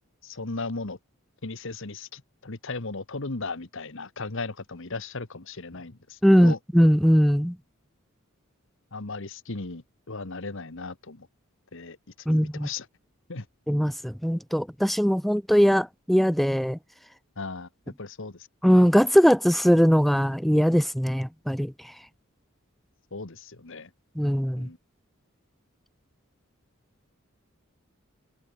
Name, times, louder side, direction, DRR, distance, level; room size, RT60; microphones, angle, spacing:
voice 1, 0.2-1.0 1.4-6.6 8.9-11.3 11.7-12.0 12.3-12.9 13.3-13.4 17.4-17.7 18.0-18.5 23.1-23.9 24.5-24.8, left 3 dB, 65° left, 1.6 m, -36 dB
voice 2, 6.2-7.6 12.3-12.7 13.7-16.8 18.6-21.7 24.2-24.7, equal, ahead, 0.4 m, -20 dB
head